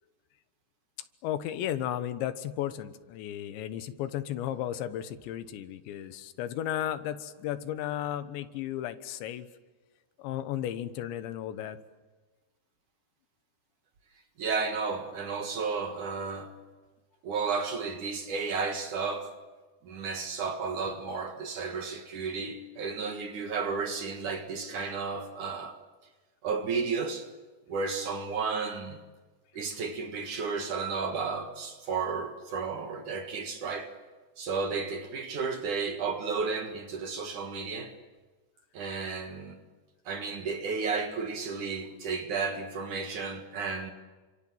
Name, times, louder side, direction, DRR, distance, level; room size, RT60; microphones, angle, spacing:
voice 1, 1.2-9.5 10.2-11.8, left 11 dB, 90° left, 3.5 m, -34 dB
voice 2, 14.4-16.5 17.2-19.3 19.8-25.8 26.4-27.3 27.7-29.0 29.5-33.9 34.4-37.9 38.7-39.6 40.1-43.9, right 5 dB, 55° right, 2.6 m, -33 dB
30.0 x 26.0 x 7.8 m
omnidirectional pair, 5.0 m